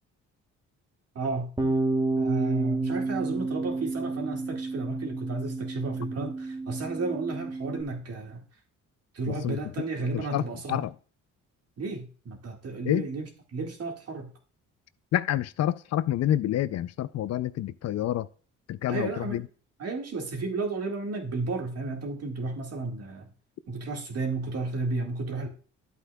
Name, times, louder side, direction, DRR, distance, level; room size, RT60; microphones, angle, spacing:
voice 1, 1.2-1.5 2.2-8.4 9.1-10.8 11.8-14.3 18.9-19.4 19.8-23.3 23.7-25.5, right 3 dB, 55° right, 2.0 m, -32 dB
Bass guitar, 1.6-7.8, right 3 dB, 15° right, 1.2 m, -30 dB
voice 2, 9.3-9.6 10.1-10.4 10.7-10.9 12.8-13.1 15.1-18.3 18.7-19.4, left 12 dB, 60° left, 0.4 m, -28 dB
11.5 x 8.0 x 2.3 m
cardioid pair, 90°, 30 cm